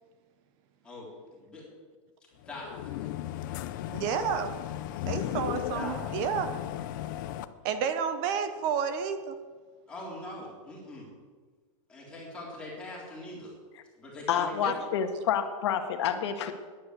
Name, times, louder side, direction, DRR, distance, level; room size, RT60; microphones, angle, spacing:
voice 1, 0.8-1.6 2.5-3.1 4.9-5.1 5.7-6.2 9.9-11.1 11.9-13.5 14.0-14.8, left 2 dB, 5° left, -5 dB, 3.6 m, -42 dB
sound 1, 2.4-7.5, left 13 dB, 35° left, 0.5 m, -35 dB
voice 2, 3.9-4.6 5.1-6.5 7.6-9.3 14.6-14.7, right 7 dB, 30° right, 10 dB, 0.7 m, -30 dB
voice 3, 14.3-16.5, left 8 dB, 55° left, 7 dB, 1.5 m, -28 dB
10.5 x 9.8 x 8.2 m, 1.5 s
supercardioid pair, 170°, 17 cm